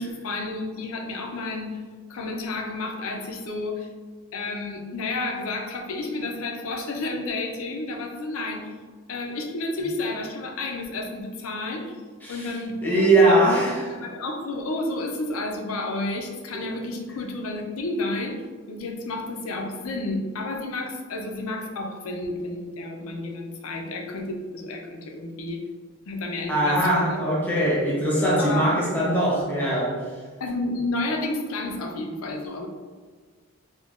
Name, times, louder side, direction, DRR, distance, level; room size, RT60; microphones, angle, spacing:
voice 1, 0.0-1.8 2.1-3.9 4.3-8.7 9.1-12.0 12.3-13.5 13.9-18.4 18.7-25.6 26.1-27.5 28.4-28.7 30.4-32.7, left 2 dB, 75° left, 2 dB, 0.5 m, -31 dB
voice 2, 12.2-12.6 12.8-13.8 26.5-30.0, right 1 dB, 10° left, -6 dB, 0.6 m, -21 dB
3.5 x 2.2 x 2.3 m, 1.5 s
head